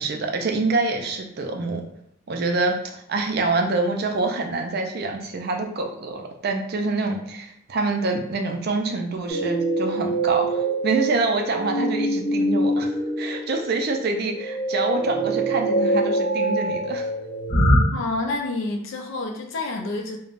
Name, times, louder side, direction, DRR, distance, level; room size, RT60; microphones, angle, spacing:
voice 1, 0.0-1.8 2.3-17.1, right 3 dB, 45° right, 3 dB, 0.4 m, -26 dB
sound 1, 9.3-17.8, right 1 dB, 25° left, 0.9 m, -24 dB
voice 2, 17.9-20.2, left 2 dB, 65° left, 1 dB, 0.4 m, -28 dB
3.3 x 2.1 x 2.4 m, 0.73 s
head